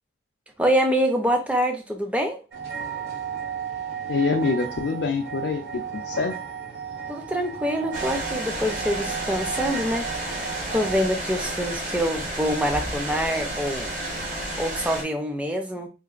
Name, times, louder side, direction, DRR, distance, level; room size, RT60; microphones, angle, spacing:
voice 1, 0.6-2.4 7.1-13.9 14.6-15.9, equal, 5° right, 0.4 m, -25 dB
sound 1, 2.5-11.0, right 7 dB, 65° right, 1.7 m, -34 dB
voice 2, 4.1-6.4, left 4 dB, 85° left, 0.4 m, -25 dB
sound 2, 7.9-15.0, right 1 dB, 45° right, 1.0 m, -31 dB
3.9 x 2.5 x 2.3 m
head